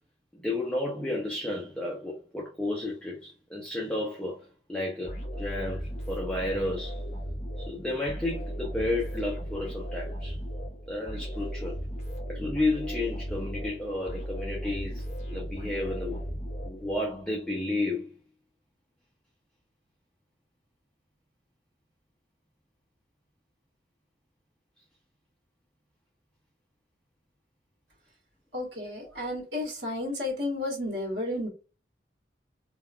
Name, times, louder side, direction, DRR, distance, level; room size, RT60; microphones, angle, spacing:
voice 1, 0.3-7.0 7.6-10.4 10.9-11.8 12.3-16.2 16.6-18.1, left 2 dB, 5° left, 0.5 m, -32 dB
sound 1, 5.0-17.2, equal, 40° left, 1.0 m, -36 dB
voice 2, 28.5-31.5, left 1 dB, 80° right, 1.4 m, -32 dB
3.5 x 2.3 x 2.3 m
head